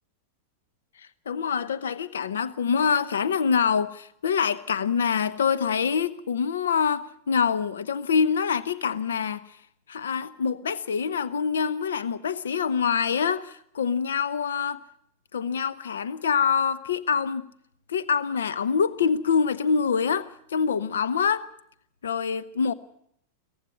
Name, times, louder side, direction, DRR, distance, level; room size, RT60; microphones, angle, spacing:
voice 1, 1.0-9.6 9.9-14.8 15.3-17.5 17.9-21.5 22.0-22.7, left 6 dB, 85° left, 0.7 m, -25 dB
18.5 x 15.0 x 9.6 m
hypercardioid pair, 115°, 0 cm